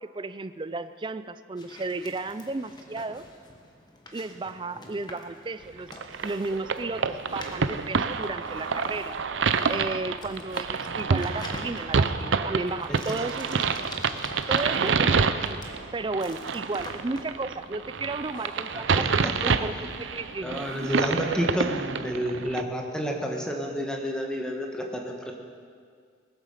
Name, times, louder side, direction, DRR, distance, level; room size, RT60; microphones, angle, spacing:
voice 1, 0.0-3.2 4.1-5.9 6.2-9.2 9.7-13.7 14.5-15.6 15.9-19.1 19.4-19.7 20.0-20.6 21.0-21.1, right 3 dB, 25° right, 13 dB, 0.4 m, -33 dB
sound 1, 1.6-21.3, left 1 dB, 20° left, 1.3 m, -47 dB
sound 2, 5.9-22.6, right 5 dB, 70° right, 0.6 m, -28 dB
voice 2, 12.9-13.2 18.7-19.6 20.4-25.3, equal, 5° left, 1 dB, 1.4 m, -30 dB
19.5 x 8.9 x 6.7 m, 2.1 s
head